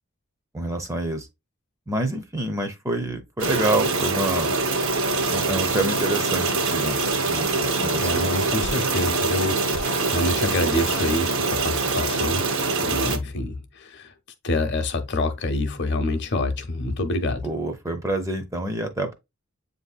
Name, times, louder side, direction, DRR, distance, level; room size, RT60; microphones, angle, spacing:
voice 1, 0.5-1.3 1.9-4.5 5.3-7.0 7.3-8.3 17.4-19.1, right 1 dB, 15° right, 0.5 m, -27 dB
sound 1, 3.4-13.2, right 3 dB, 65° right, 0.8 m, -24 dB
sound 2, 5.6-11.2, left 7 dB, 75° left, 0.4 m, -38 dB
voice 2, 8.0-12.4 12.8-14.1 14.4-17.5, left 2 dB, 55° left, 0.7 m, -27 dB
7.8 x 2.6 x 2.3 m
head